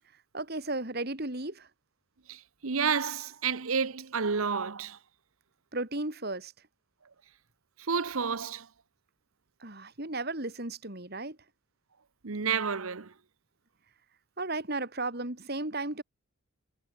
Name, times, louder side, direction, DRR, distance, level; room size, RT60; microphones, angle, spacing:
voice 1, 0.3-1.7 5.7-6.5 9.6-11.4 14.4-16.0, right 2 dB, 50° right, 3.1 m, -34 dB
voice 2, 2.3-5.0 7.9-8.7 12.2-13.1, right 6 dB, 80° right, 1.0 m, -30 dB
head